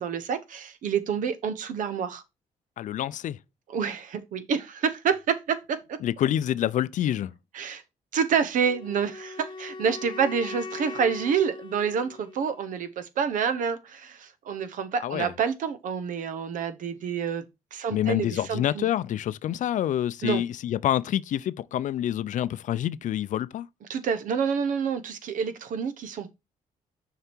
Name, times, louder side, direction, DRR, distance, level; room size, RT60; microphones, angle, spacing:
voice 1, 0.0-2.2 3.7-5.8 7.5-7.8 8.1-17.4 17.7-18.9 20.2-20.4 23.9-26.3, right 6 dB, 70° right, 1.1 m, -28 dB
voice 2, 2.8-3.4 6.0-7.3 15.0-15.3 17.9-23.7, left 11 dB, 65° left, 0.5 m, -27 dB
Wind instrument woodwind instrument, 8.6-12.7, left 3 dB, 35° left, 0.8 m, -40 dB
6.6 x 4.9 x 4.5 m
cardioid pair, 75°, 14 cm